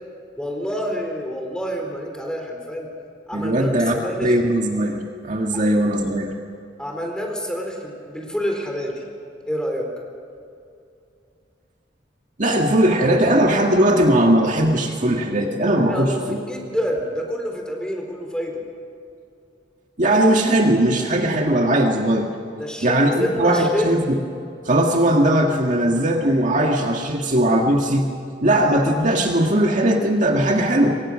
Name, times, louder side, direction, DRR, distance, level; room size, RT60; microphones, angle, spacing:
voice 1, 0.4-2.9 3.3-4.3 5.5-5.6 6.8-9.0 9.5-9.9 15.9-18.6 22.6-23.9, equal, 5° left, 1 dB, 4.0 m, -27 dB
voice 2, 3.3-3.9 4.2-6.3 12.4-16.4 20.0-22.3 22.8-24.2 24.6-28.1 28.4-31.0, right 1 dB, 45° right, 2 dB, 1.9 m, -19 dB
28.5 x 23.5 x 6.4 m, 2.5 s
head